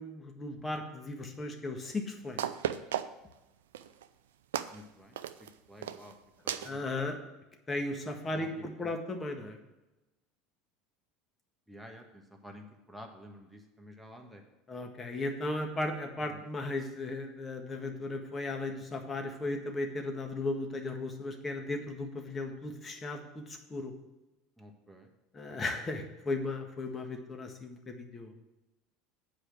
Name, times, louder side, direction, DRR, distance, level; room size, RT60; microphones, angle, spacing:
voice 1, 0.0-2.4 6.6-7.2 7.7-9.6 14.7-23.9 25.3-28.3, left 2 dB, 25° left, 4 dB, 1.6 m, -36 dB
sound 1, 1.8-1.9 2.4-3.3 3.7-4.0 4.5-4.8 5.2-5.5 5.8-6.1 6.5-6.7, right 10 dB, 75° right, 0.5 m, -35 dB
voice 2, 4.7-5.2 5.7-6.2 6.4-7.1 8.3-9.0 11.7-14.4 16.2-16.5 24.6-25.1 25.5-25.6, equal, 5° right, 2 dB, 1.7 m, -51 dB
8.2 x 5.1 x 7.7 m, 1.0 s
hypercardioid pair, 75°, 0 cm